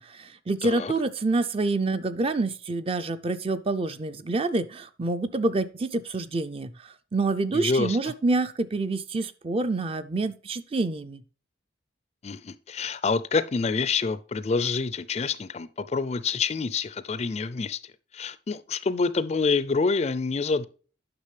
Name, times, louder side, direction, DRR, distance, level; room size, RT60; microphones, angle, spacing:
voice 1, 0.0-11.2, right 3 dB, 30° right, 0.4 m, -27 dB
voice 2, 0.6-0.9 7.5-8.0 12.2-20.6, left 4 dB, 35° left, 0.4 m, -27 dB
9.6 x 6.1 x 3.3 m
head